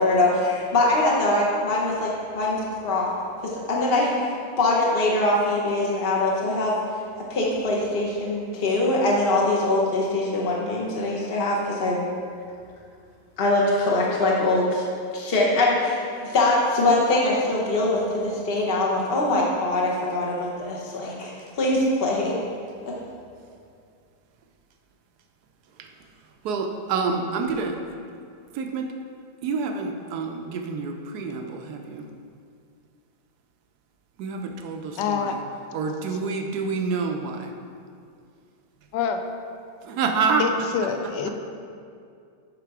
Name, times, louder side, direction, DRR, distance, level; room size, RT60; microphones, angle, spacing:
voice 1, 0.0-3.1 3.4-6.8 7.3-12.0 13.4-14.9 15.1-22.3 22.9-23.0, left 2 dB, 50° left, -3 dB, 0.7 m, -23 dB
voice 2, 26.4-28.0 28.5-28.9 29.4-32.0 34.2-35.4 35.7-37.5 39.8-40.9, right 4 dB, 70° right, 4 dB, 1.0 m, -28 dB
voice 3, 34.9-35.4 38.9-39.2 40.4-41.3, left 6 dB, 70° left, 6 dB, 1.2 m, -26 dB
10.5 x 3.7 x 4.7 m, 2.3 s
omnidirectional pair, 2.1 m